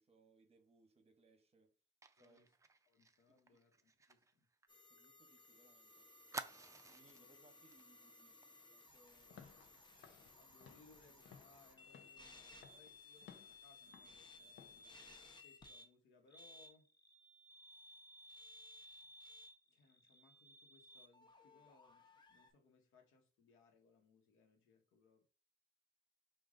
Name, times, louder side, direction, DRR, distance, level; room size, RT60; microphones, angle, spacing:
voice 1, 0.0-1.7 2.2-2.4 3.3-3.6 4.9-6.1 6.8-8.4 8.7-9.7 12.0-12.1, right 3 dB, 30° right, 1.0 m, -70 dB
Fire, 2.0-5.5 5.7-5.8 6.3-7.3 7.7-7.9 8.2-8.4, right 4 dB, 15° right, 0.4 m, -52 dB
voice 2, 2.2-2.5 2.9-4.5 6.6-6.8 10.4-16.9 19.7-25.3, left 4 dB, 90° left, 1.1 m, -70 dB
sound 1, 4.7-15.9 16.3-22.5, left 2 dB, 20° left, 0.8 m, -60 dB
Walk footsteps / Siren, 9.2-14.8, left 7 dB, 70° left, 0.8 m, -63 dB
4.9 x 2.5 x 3.7 m
cardioid pair, 90°, 20 cm